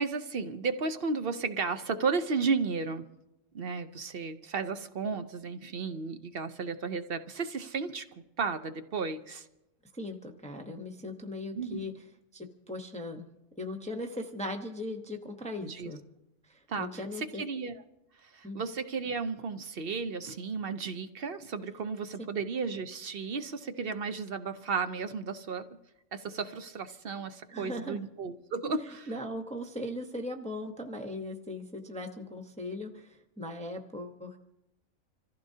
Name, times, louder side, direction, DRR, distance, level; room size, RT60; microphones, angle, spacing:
voice 1, 0.0-3.1 3.5-8.0 8.4-9.5 11.5-11.8 15.6-15.9 16.7-17.8 18.2-25.7 26.1-29.1, right 4 dB, 50° right, 9 dB, 0.8 m, -34 dB
voice 2, 9.9-11.9 12.3-13.2 13.6-16.0 16.4-17.4 18.4-18.6 27.5-28.0 29.1-34.4, left 1 dB, 5° left, 4 dB, 0.8 m, -39 dB
27.0 x 14.5 x 2.8 m, 0.91 s
omnidirectional pair, 1.5 m